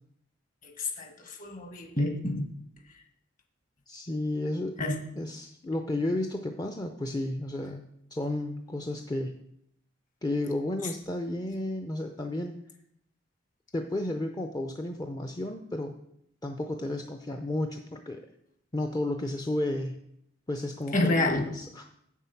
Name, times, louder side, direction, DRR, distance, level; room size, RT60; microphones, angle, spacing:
voice 1, 0.8-2.5 4.8-5.0 20.9-21.5, left 2 dB, 45° left, 5 dB, 1.5 m, -28 dB
voice 2, 3.9-4.8 5.2-7.8 8.1-9.4 10.2-12.6 13.7-16.0 16.4-18.2 18.7-20.0 20.5-21.8, left 1 dB, 20° left, 5 dB, 0.5 m, -32 dB
8.1 x 7.3 x 5.8 m, 0.75 s
head